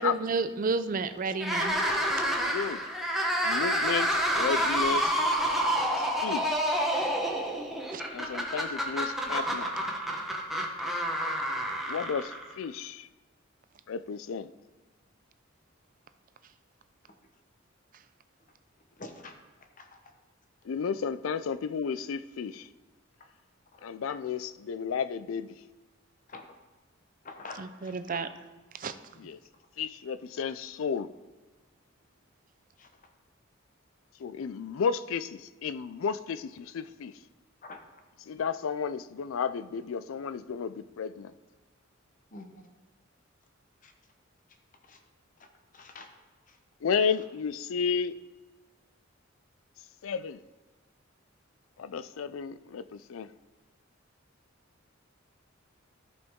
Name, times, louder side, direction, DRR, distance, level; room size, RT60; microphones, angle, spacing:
voice 1, 0.0-1.8 7.9-8.0 27.5-28.3 28.7-28.9, right 4 dB, 40° right, 0.5 m, -31 dB
sound 1, 1.3-12.6, equal, ahead, 1.0 m, -28 dB
voice 2, 2.4-2.8 3.4-5.1 6.0-6.5 8.1-9.7 11.9-13.1 13.9-14.5 20.6-22.7 23.8-25.6 29.2-29.4 29.8-31.1 34.2-37.1 38.3-41.3 46.8-48.1 50.0-50.4 51.8-53.3, left 6 dB, 85° left, 0.4 m, -32 dB
voice 3, 19.0-19.3 26.3-26.4 27.2-27.6 28.1-28.2 37.6-37.8 42.3-42.6 45.8-46.1, left 3 dB, 40° left, 1.0 m, -43 dB
13.5 x 5.2 x 3.6 m
head